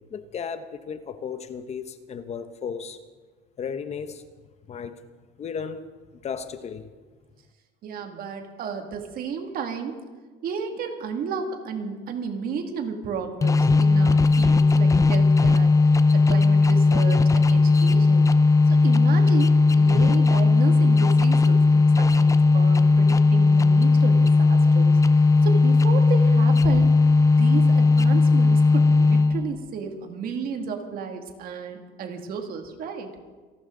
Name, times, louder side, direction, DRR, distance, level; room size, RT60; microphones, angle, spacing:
voice 1, 0.1-3.0 3.6-4.2 4.7-5.0 5.4-5.9 6.2-6.9, left 6 dB, 35° left, 11 dB, 0.9 m, -34 dB
voice 2, 7.8-10.0 10.4-15.7 16.1-18.3 18.7-25.0 25.4-26.9 27.3-33.1, right 6 dB, 50° right, 4 dB, 2.3 m, -33 dB
sound 1, 13.4-29.5, left 3 dB, 15° left, 0.6 m, -17 dB
27.5 x 12.0 x 3.9 m, 1.4 s
cardioid pair, 125°, 19 cm